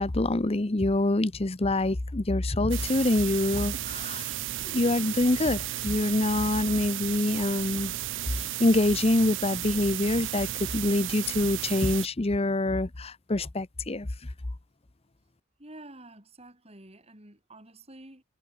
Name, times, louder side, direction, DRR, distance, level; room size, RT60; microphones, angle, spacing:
voice 1, 0.0-4.3 4.6-7.9 8.3-14.3, left 2 dB, 25° left, 0.8 m, -26 dB
sound 1, 2.7-12.1, right 13 dB, 55° right, 0.5 m, -34 dB
voice 2, 15.6-18.2, right 1 dB, 25° right, 4.4 m, -49 dB
head